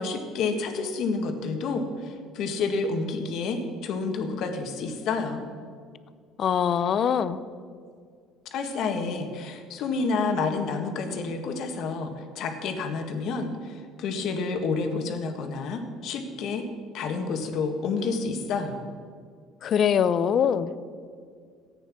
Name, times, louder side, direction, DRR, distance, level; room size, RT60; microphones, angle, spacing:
voice 1, 0.0-5.4 8.5-16.6 16.9-18.8, left 4 dB, 65° left, 5 dB, 1.7 m, -29 dB
voice 2, 6.4-7.4 19.6-20.7, left 8 dB, 50° left, 14 dB, 0.6 m, -23 dB
14.0 x 9.0 x 6.2 m, 2.1 s
supercardioid pair, 95°, 0 cm